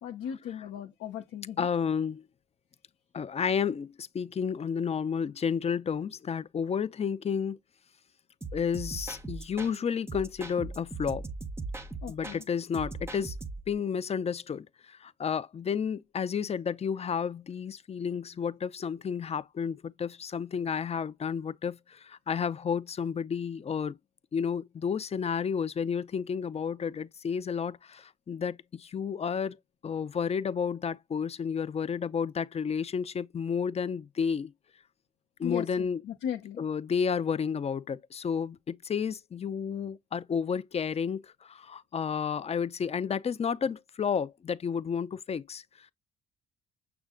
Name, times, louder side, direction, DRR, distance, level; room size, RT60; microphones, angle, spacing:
voice 1, 0.0-1.7 12.0-12.4 35.4-36.6, left 9 dB, 90° left, 0.8 m, -37 dB
voice 2, 1.6-2.2 3.1-7.6 8.5-11.3 12.1-13.4 13.7-24.0 24.3-29.6 29.8-34.5 35.4-36.0 36.6-45.6, left 6 dB, 30° left, 0.4 m, -31 dB
sound 1, 8.4-9.8 10.1-12.4 12.7-13.7, right 3 dB, 10° right, 0.8 m, -39 dB
6.1 x 2.2 x 3.6 m
cardioid pair, 90°, 20 cm